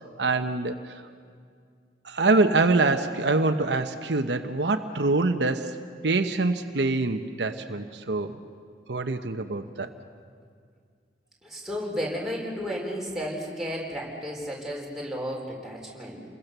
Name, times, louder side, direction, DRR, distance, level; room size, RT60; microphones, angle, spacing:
voice 1, 0.2-0.9 2.0-8.4 8.9-9.9, right 3 dB, 75° right, 7 dB, 1.0 m, -25 dB
voice 2, 11.4-16.2, equal, ahead, -3 dB, 4.5 m, -33 dB
29.0 x 22.0 x 6.8 m, 2.1 s
head